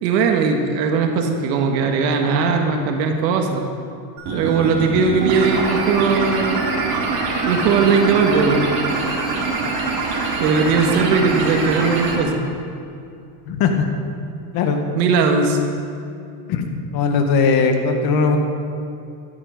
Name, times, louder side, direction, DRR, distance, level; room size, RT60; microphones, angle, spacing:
voice 1, 0.0-3.6 4.3-6.7 7.4-8.7 10.4-12.4 14.9-15.6, right 5 dB, 90° right, 3 dB, 1.8 m, -19 dB
sound 1, 4.2-12.2, right 3 dB, 45° right, 3.6 m, -23 dB
voice 2, 13.5-13.8 14.5-14.8 16.5-16.6 16.9-18.4, left 5 dB, 50° left, 4 dB, 1.8 m, -18 dB
14.5 x 12.5 x 5.1 m, 2.5 s
cardioid pair, 145°, 48 cm